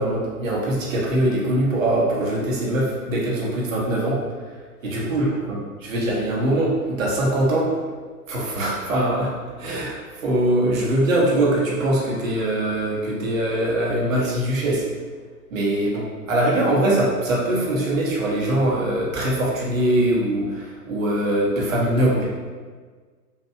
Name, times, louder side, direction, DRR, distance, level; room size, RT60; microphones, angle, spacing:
voice 1, 0.0-4.2 4.8-7.7 8.3-9.3 9.6-14.8 15.5-22.3, right 1 dB, 55° right, -4 dB, 1.1 m, -22 dB
voice 2, 4.9-5.4 21.9-22.3, left 2 dB, 55° left, -2 dB, 0.7 m, -39 dB
4.3 x 2.5 x 2.3 m, 1.5 s
figure-of-eight pair, 115°, 48 cm